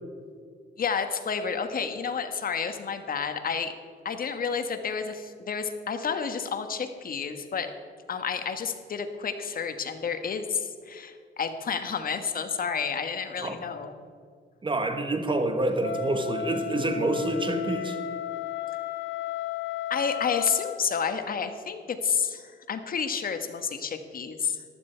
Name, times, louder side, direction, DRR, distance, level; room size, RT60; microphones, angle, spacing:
voice 1, 0.8-3.8 4.0-7.7 8.1-13.9 19.9-24.6, left 6 dB, 45° left, 8 dB, 1.4 m, -30 dB
voice 2, 14.6-18.0, right 2 dB, 25° right, 7 dB, 1.6 m, -27 dB
Wind instrument woodwind instrument, 15.8-20.8, left 12 dB, 70° left, 1.0 m, -34 dB
14.5 x 12.0 x 4.6 m, 2.1 s
cardioid pair, 90°, 20 cm